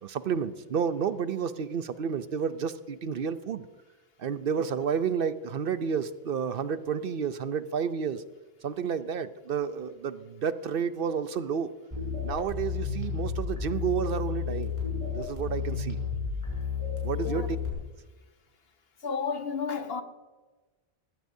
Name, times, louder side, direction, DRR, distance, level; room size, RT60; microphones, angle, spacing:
voice 1, 0.0-3.7 4.2-8.2 8.6-11.7 12.2-14.7 15.1-16.0 17.0-17.4, right 7 dB, 60° right, 0.8 m, -30 dB
sound 1, 11.9-17.7, left 6 dB, 30° right, 6.1 m, -32 dB
voice 2, 17.1-17.5 19.0-20.0, left 5 dB, 65° left, 1.3 m, -32 dB
20.0 x 16.0 x 2.7 m
omnidirectional pair, 1.1 m